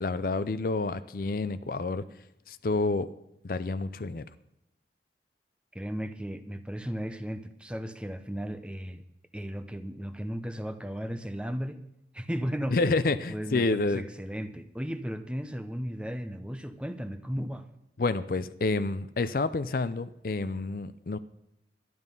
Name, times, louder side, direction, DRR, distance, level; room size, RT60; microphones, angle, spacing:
voice 1, 0.0-2.0 2.5-3.1 3.4-4.3 12.7-14.0 18.0-21.2, left 3 dB, 50° left, 13 dB, 0.5 m, -29 dB
voice 2, 5.7-9.0 9.3-11.8 12.1-12.8 13.3-17.7, equal, 5° right, 8 dB, 0.7 m, -35 dB
12.0 x 11.0 x 5.4 m, 0.84 s
head